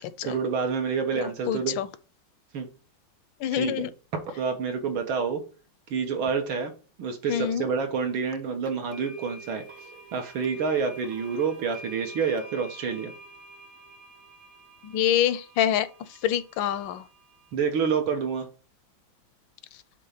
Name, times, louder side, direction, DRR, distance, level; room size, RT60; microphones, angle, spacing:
voice 1, 0.0-1.8 2.5-2.7 3.5-5.4 5.9-6.7 7.0-9.6 10.1-13.1 17.5-18.5, right 6 dB, 75° right, 2.1 m, -28 dB
voice 2, 1.2-1.9 3.4-3.9 7.3-7.6 14.8-15.9 16.2-17.0, left 10 dB, 75° left, 1.3 m, -26 dB
sound 1, 8.7-17.5, right 3 dB, 60° right, 0.5 m, -46 dB
7.6 x 3.2 x 5.7 m
omnidirectional pair, 2.3 m